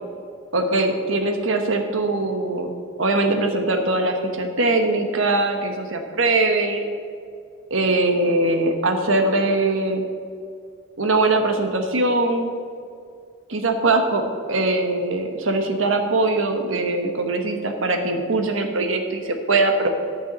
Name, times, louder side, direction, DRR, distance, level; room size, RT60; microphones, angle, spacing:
voice 1, 0.5-2.7 3.0-6.8 7.7-10.1 11.0-12.5 13.5-14.2 14.5-19.9, right 2 dB, 75° right, 5 dB, 1.2 m, -21 dB
10.0 x 5.4 x 7.8 m, 2.3 s
head